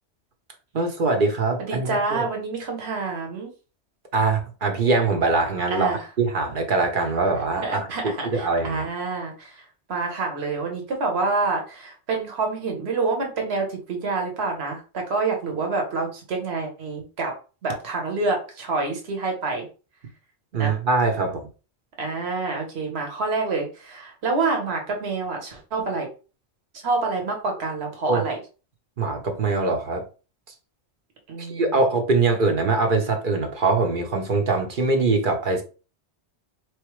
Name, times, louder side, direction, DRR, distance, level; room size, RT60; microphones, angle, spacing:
voice 1, 0.7-2.3 4.1-8.9 20.5-21.5 28.1-28.2 29.0-30.0 31.4-35.6, right 3 dB, 50° right, 1.0 m, -23 dB
voice 2, 1.7-3.5 5.7-6.0 7.6-9.5 9.9-17.3 17.6-19.7 20.5-20.8 22.0-26.1 26.8-28.4 31.3-31.8, right 3 dB, 65° right, 1.4 m, -27 dB
4.2 x 3.2 x 3.1 m
omnidirectional pair, 1.1 m